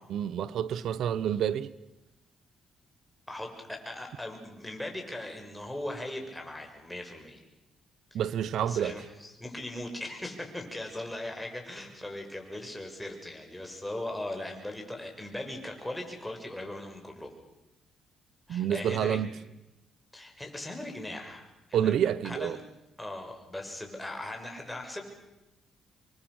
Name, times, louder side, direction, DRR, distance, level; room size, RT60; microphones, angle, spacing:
voice 1, 0.1-1.7 8.1-9.0 18.5-19.3 21.7-22.6, right 9 dB, 75° right, 1.0 m, -28 dB
voice 2, 3.3-7.4 8.1-8.2 8.5-17.3 18.5-19.2 20.1-22.6 23.0-25.0, left 1 dB, 5° left, 6.5 m, -39 dB
27.5 x 23.5 x 6.5 m
cardioid pair, 90°, 0 cm